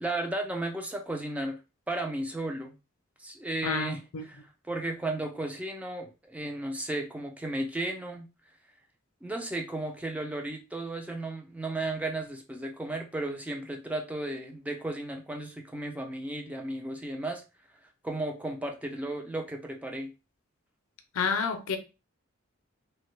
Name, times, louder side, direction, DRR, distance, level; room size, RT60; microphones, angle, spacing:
voice 1, 0.0-1.6 1.9-2.7 3.2-4.4 4.7-8.3 9.2-17.4 18.0-20.1, right 2 dB, 5° right, 0.3 m, -34 dB
voice 2, 3.6-4.2 21.1-21.8, left 5 dB, 75° left, 0.5 m, -29 dB
2.8 x 2.2 x 3.1 m
head